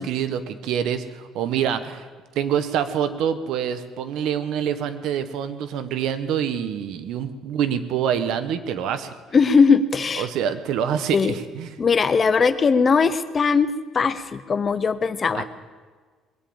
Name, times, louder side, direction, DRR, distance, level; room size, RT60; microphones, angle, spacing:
voice 1, 0.0-2.1 2.3-9.2 10.2-11.7 15.3-15.4, right 8 dB, 65° right, 11 dB, 1.0 m, -26 dB
voice 2, 9.3-10.3 11.1-11.4 11.8-15.4, left 5 dB, 25° left, 13 dB, 0.6 m, -19 dB
21.0 x 7.4 x 8.8 m, 1.5 s
cardioid pair, 165°, 0 cm